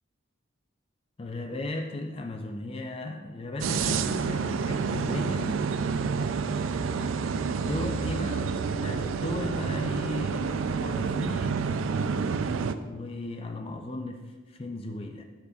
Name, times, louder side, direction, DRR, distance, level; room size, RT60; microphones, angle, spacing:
voice 1, 1.2-5.7 7.5-11.8 12.8-15.2, left 2 dB, 30° left, 4 dB, 0.5 m, -36 dB
sound 1, 3.6-12.8, right 5 dB, 85° right, 0.4 m, -29 dB
13.0 x 5.1 x 2.4 m, 1.3 s
head